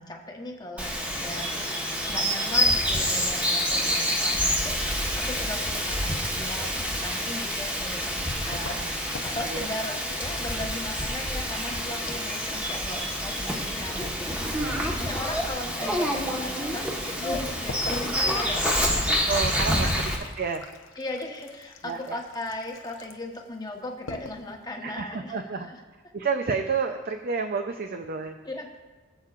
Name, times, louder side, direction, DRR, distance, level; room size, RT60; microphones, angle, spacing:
voice 1, 0.0-8.8 9.2-14.5 14.8-19.5 19.8-19.9 21.0-25.8 28.4-28.8, left 1 dB, 20° left, 1 dB, 1.1 m, -38 dB
Bird vocalization bird call bird song, 0.8-20.2, equal, 5° right, 1.2 m, -27 dB
voice 2, 8.4-8.9 9.4-9.7 14.5-14.9 19.3-20.1 20.4-20.7 21.8-22.2 24.8-25.7 26.1-28.3, right 5 dB, 50° right, 6 dB, 0.5 m, -30 dB
sound 1, 8.5-13.0 13.2-14.1 17.7-23.4 23.8-23.9 24.1-24.6, left 3 dB, 65° left, 0.8 m, -42 dB
22.0 x 7.5 x 2.5 m, 1.3 s
head